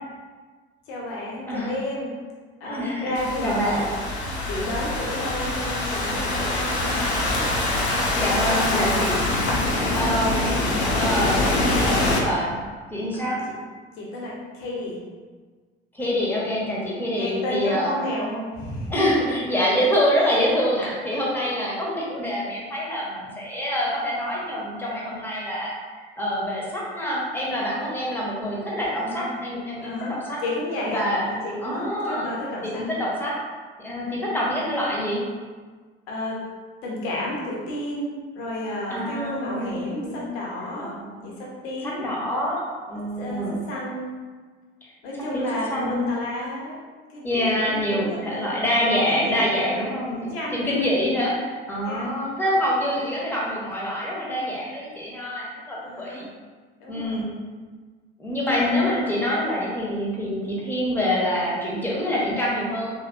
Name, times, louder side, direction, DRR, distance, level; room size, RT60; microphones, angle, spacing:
voice 1, 0.9-2.2 2.6-3.9 4.5-7.5 8.2-9.0 13.1-13.3 14.0-15.0 17.1-19.6 20.3-20.4 29.0-29.3 29.8-30.2 30.4-32.8 36.1-36.4 36.8-40.9 41.2-42.1 43.2-44.1 45.0-46.8 47.1-48.6 48.9-49.8 50.1-50.9 51.8-52.1 55.8-56.2 56.8-57.2 58.5-59.0, left 1 dB, 60° left, -4 dB, 0.9 m, -32 dB
voice 2, 2.6-3.1 3.4-3.8 8.1-9.3 9.9-10.5 11.0-12.6 12.9-13.4 15.9-18.0 18.9-25.7 26.2-30.0 30.3-30.4 30.9-31.4 31.6-32.3 32.7-33.3 33.8-35.2 38.9-40.3 40.8-41.2 41.8-43.6 45.3-46.0 47.2-56.3 56.9-57.3 58.2-62.9, equal, 5° left, -5 dB, 0.8 m, -26 dB
Thunderstorm / Rain, 3.2-12.2, left 2 dB, 75° left, 0.6 m, -24 dB
3.1 x 2.8 x 2.5 m, 1.5 s
figure-of-eight pair, 55°, 33 cm